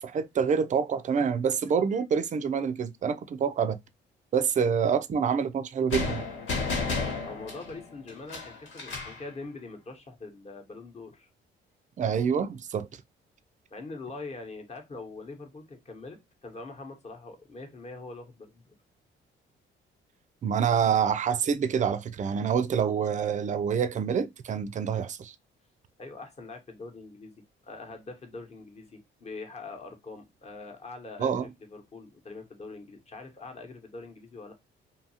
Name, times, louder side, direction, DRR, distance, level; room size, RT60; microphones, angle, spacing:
voice 1, 0.0-3.8 4.3-6.2 12.0-12.9 20.4-25.3 31.2-31.5, right 7 dB, 40° right, 0.4 m, -27 dB
sound 1, 5.9-9.2, left 4 dB, 75° left, 1.3 m, -32 dB
voice 2, 7.2-11.3 13.7-18.8 26.0-34.5, left 3 dB, 35° left, 0.9 m, -43 dB
2.7 x 2.4 x 2.7 m
cardioid pair, 90°, 20 cm